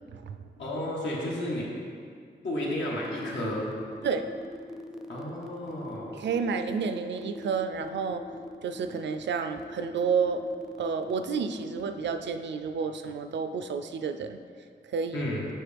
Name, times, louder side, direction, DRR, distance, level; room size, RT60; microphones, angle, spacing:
voice 1, 0.6-1.7 2.4-3.7 5.1-6.2 15.1-15.4, left 1 dB, 85° left, -5 dB, 1.5 m, -32 dB
sound 1, 3.0-12.4, left 1 dB, 5° right, 0.5 m, -42 dB
voice 2, 6.1-8.2 8.6-10.4 10.8-14.4 14.8-15.2, right 5 dB, 80° right, 8 dB, 0.4 m, -30 dB
7.7 x 5.8 x 3.4 m, 2.2 s
wide cardioid pair, 125°, 18 cm